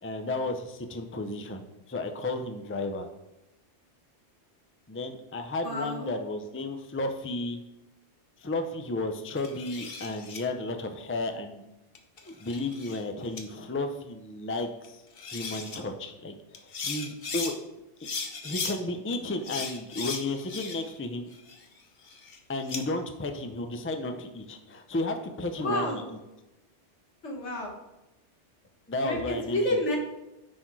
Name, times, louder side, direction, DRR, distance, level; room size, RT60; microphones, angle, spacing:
voice 1, 0.0-3.1 4.9-7.6 8.4-11.6 12.4-15.0 15.3-17.5 18.4-21.3 22.5-26.2 28.9-29.8, left 2 dB, 15° left, 6 dB, 0.5 m, -33 dB
voice 2, 5.6-6.1 25.6-26.1 27.2-27.7 29.0-30.0, left 1 dB, 80° left, 0 dB, 1.9 m, -30 dB
sound 1, 9.4-10.4 12.0-13.0 13.4-13.5 14.8-14.9 15.2-15.8 16.5-17.5 18.0-18.8 19.4-21.0 21.3-22.8, left 4 dB, 55° left, 1.1 m, -37 dB
9.8 x 4.3 x 4.6 m, 0.97 s
omnidirectional pair, 1.2 m